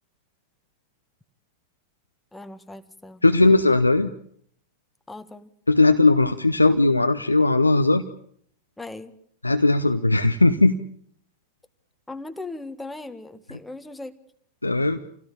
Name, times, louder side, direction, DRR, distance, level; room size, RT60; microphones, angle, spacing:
voice 1, 2.3-3.2 5.1-5.5 8.8-9.1 12.1-14.1, left 2 dB, 5° left, 9 dB, 1.7 m, -38 dB
voice 2, 3.2-4.1 5.7-8.0 9.4-10.8 14.6-15.0, left 2 dB, 85° left, 7 dB, 0.9 m, -18 dB
27.5 x 17.0 x 8.6 m, 0.63 s
figure-of-eight pair, 90°, 0 cm